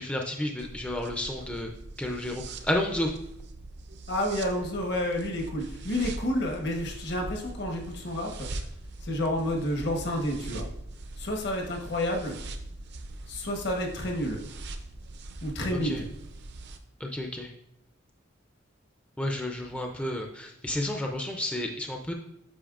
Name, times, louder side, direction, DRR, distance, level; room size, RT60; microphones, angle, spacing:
voice 1, 0.0-1.7 2.0-3.1 15.7-16.0 17.0-17.5 19.2-22.1, left 1 dB, 5° left, 1 dB, 0.4 m, -31 dB
sound 1, 0.6-16.8, right 2 dB, 60° right, 0.6 m, -42 dB
voice 2, 4.1-8.5 9.0-10.7 11.2-12.4 13.3-14.4 15.4-16.1, left 1 dB, 60° left, 2 dB, 1.1 m, -30 dB
8.5 x 5.3 x 2.4 m, 0.78 s
head